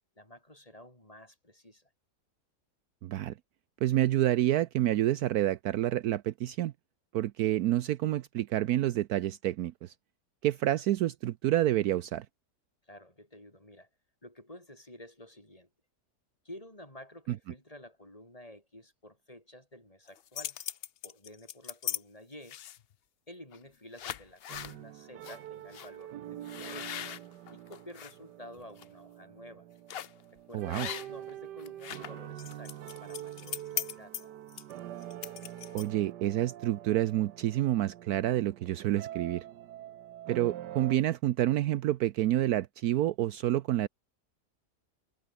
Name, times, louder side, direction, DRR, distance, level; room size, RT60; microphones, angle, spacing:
voice 1, 0.2-1.9 12.8-13.9 14.2-15.7 16.4-20.6 21.0-22.6 23.3-27.2 27.5-29.7 30.3-34.1 40.6-40.7, left 1 dB, 20° left, 5.7 m, -51 dB
voice 2, 3.0-3.3 3.8-6.7 7.1-9.9 10.4-12.3 30.5-30.9 35.7-39.4 40.3-43.9, right 13 dB, 70° right, 1.1 m, -28 dB
sound 1, 20.1-22.0 22.4-22.9 23.5-23.7 24.0-24.8 25.2-25.4 25.7-25.9 26.4-28.1 28.6-28.8 29.9-30.2 30.7-31.3 31.6-36.1, left 10 dB, 65° left, 0.5 m, -39 dB
sound 2, 24.5-41.0, right 12 dB, 90° right, 1.5 m, -45 dB
omnidirectional pair, 1.8 m